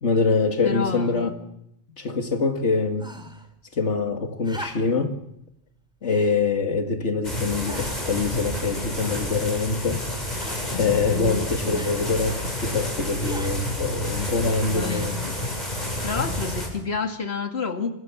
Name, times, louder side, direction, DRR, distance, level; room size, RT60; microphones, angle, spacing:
voice 1, 0.0-1.3 2.0-3.1 3.7-5.2 6.0-10.1 10.7-15.2, left 4 dB, 80° left, 2.3 m, -24 dB
voice 2, 0.6-1.3 10.7-11.9 14.4-15.4 16.0-17.9, left 4 dB, 60° left, 2.5 m, -30 dB
sound 1, 3.0-3.5 4.4-5.1 6.1-6.4 7.1-7.2 7.7-8.1 9.0-9.5 10.4-10.8 11.7-12.0 13.2-13.6 14.9-15.3 16.4-16.5, equal, 5° right, 3.4 m, -40 dB
sound 2, 7.2-16.7, left 1 dB, 35° left, 7.4 m, -30 dB
29.5 x 26.5 x 7.1 m
omnidirectional pair, 1.2 m